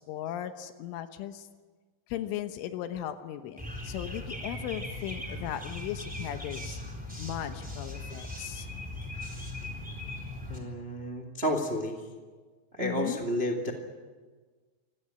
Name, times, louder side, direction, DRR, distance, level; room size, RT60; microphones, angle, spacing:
voice 1, 0.0-1.5 2.1-6.8 7.2-8.7 12.8-13.2, left 11 dB, 85° left, 8 dB, 3.6 m, -37 dB
sound 1, 3.6-10.6, left 1 dB, ahead, 3.0 m, -39 dB
voice 2, 10.5-12.0 12.7-13.7, equal, 55° right, 2 dB, 0.6 m, -31 dB
26.5 x 17.0 x 10.0 m, 1.4 s
omnidirectional pair, 5.5 m